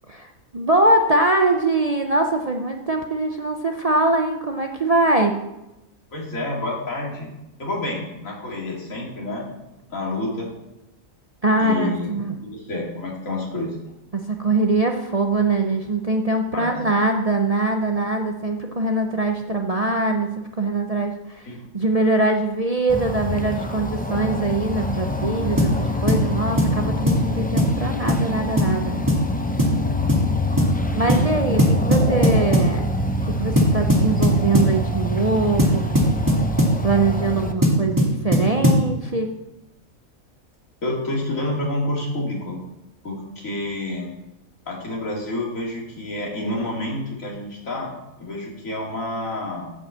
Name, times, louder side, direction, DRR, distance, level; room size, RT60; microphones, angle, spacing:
voice 1, 0.1-5.3 11.4-12.4 14.1-28.9 30.9-32.8 33.3-35.8 36.8-39.3, right 2 dB, 35° right, 3 dB, 0.6 m, -22 dB
voice 2, 6.1-7.3 7.6-9.5 9.9-10.5 11.6-12.1 12.4-13.8 16.5-16.7 21.5-21.6 31.1-31.2 40.8-42.6 43.0-44.1 44.7-47.9 48.2-49.7, left 1 dB, 75° left, -2 dB, 2.9 m, -28 dB
sound 1, 22.9-37.5, left 1 dB, 15° left, 0.3 m, -26 dB
sound 2, 25.6-25.8 26.1-26.3 26.6-26.8 27.1-27.2 27.6-27.8 28.1-28.3 28.6-28.7 29.1-29.3 29.6-29.8 30.1-30.3 30.6-30.7 31.1-31.3 31.6-32.7 33.6-34.8 35.6-36.8 37.6-38.9, equal, 15° right, 1.9 m, -18 dB
9.7 x 5.5 x 7.2 m, 0.94 s
omnidirectional pair, 1.4 m